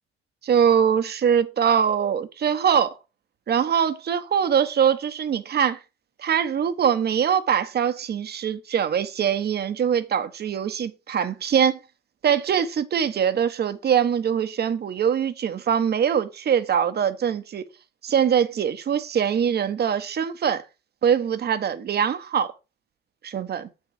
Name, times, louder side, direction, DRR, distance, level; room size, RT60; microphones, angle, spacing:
voice 1, 0.4-3.0 3.5-5.8 6.2-11.8 12.2-17.6 18.0-20.6 21.0-22.5 23.2-23.7, right 8 dB, 55° right, 1.1 m, -23 dB
8.0 x 6.7 x 4.8 m
cardioid pair, 90°, 20 cm